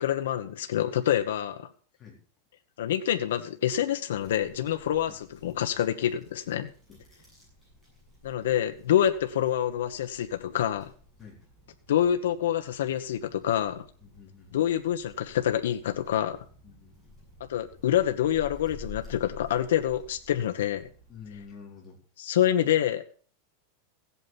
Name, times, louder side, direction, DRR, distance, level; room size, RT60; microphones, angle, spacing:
voice 1, 0.0-1.7 2.8-5.1 5.4-6.7 8.2-10.9 11.9-13.8 14.5-16.4 17.5-20.9 22.2-23.2, left 11 dB, 85° left, 7 dB, 1.1 m, -27 dB
sound 1, 4.1-21.5, left 2 dB, 5° right, 7.5 m, -52 dB
voice 2, 14.0-14.6 16.6-17.2 21.1-22.0, left 6 dB, 15° left, -2 dB, 4.1 m, -48 dB
16.0 x 8.5 x 5.9 m, 0.43 s
supercardioid pair, 180°, 0 cm